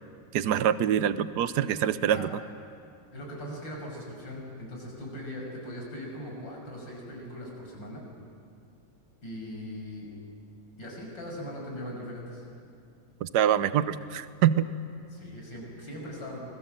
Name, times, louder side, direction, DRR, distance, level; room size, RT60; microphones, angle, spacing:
voice 1, 0.3-2.4 13.2-14.7, right 10 dB, 65° right, 14 dB, 1.3 m, -25 dB
voice 2, 3.1-8.0 9.2-10.1 10.8-12.4 15.1-16.4, equal, 75° left, -1 dB, 6.7 m, -40 dB
26.5 x 21.0 x 7.6 m, 2.4 s
omnidirectional pair, 2.0 m